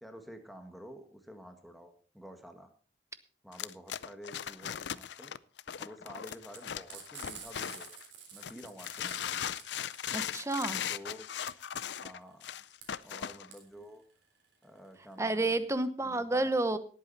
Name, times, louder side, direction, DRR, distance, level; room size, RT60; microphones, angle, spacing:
voice 1, 0.0-2.7 3.4-5.3 5.8-9.5 10.9-11.2 12.0-12.5 13.0-14.0 14.6-15.7 16.0-16.5, equal, ahead, 5 dB, 1.6 m, -50 dB
sound 1, 3.5-8.0 8.4-13.5, left 9 dB, 70° left, 0.5 m, -38 dB
Frying (food), 6.5-15.3, right 7 dB, 80° right, 3.7 m, -50 dB
voice 2, 10.1-10.8 15.2-16.8, right 2 dB, 15° right, 11 dB, 0.9 m, -30 dB
18.5 x 8.6 x 4.1 m, 0.40 s
head